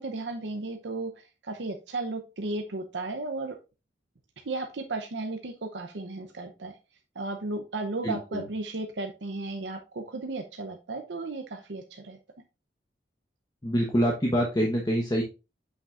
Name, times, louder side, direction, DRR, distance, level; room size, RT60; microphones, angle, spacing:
voice 1, 0.0-3.5 4.4-6.7 7.2-12.2, right 2 dB, 85° right, 4 dB, 0.8 m, -34 dB
voice 2, 8.0-8.5 13.6-15.2, equal, 20° left, -1 dB, 1.1 m, -26 dB
8.0 x 6.0 x 2.5 m, 0.29 s
head